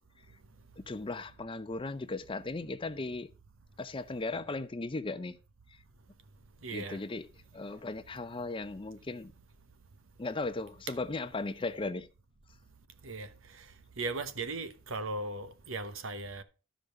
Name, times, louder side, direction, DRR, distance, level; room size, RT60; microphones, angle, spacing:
voice 1, 0.8-3.3 3.8-5.4 5.7-5.8 6.7-7.2 7.5-9.3 10.2-12.1, left 3 dB, 25° left, 0.5 m, -37 dB
voice 2, 6.6-7.0 13.0-13.3 14.0-16.4, right 3 dB, 70° right, 1.1 m, -37 dB
12.5 x 5.1 x 5.3 m
head